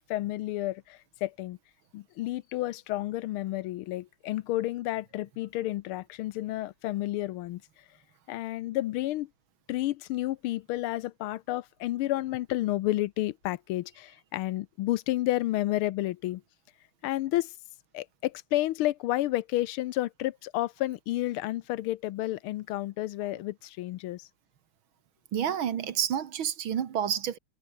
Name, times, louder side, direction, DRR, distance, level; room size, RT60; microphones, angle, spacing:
voice 1, 0.1-1.6 1.9-7.6 8.3-9.3 9.7-16.4 17.0-17.5 17.9-24.3, left 16 dB, 80° left, 1.5 m, -31 dB
voice 2, 25.3-27.4, right 9 dB, 65° right, 2.2 m, -29 dB
omnidirectional pair, 2.4 m